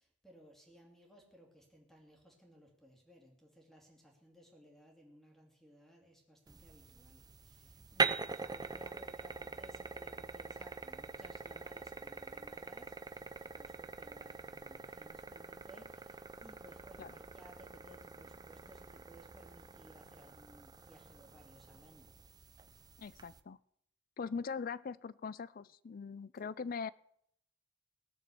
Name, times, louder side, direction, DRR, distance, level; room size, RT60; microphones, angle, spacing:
voice 1, 0.0-22.1, equal, ahead, 0 dB, 2.5 m, -60 dB
sound 1, 6.5-23.4, right 4 dB, 20° right, 0.5 m, -43 dB
voice 2, 23.0-23.6 24.2-26.9, left 5 dB, 45° left, 20 dB, 0.4 m, -41 dB
18.0 x 7.1 x 6.9 m, 0.73 s
head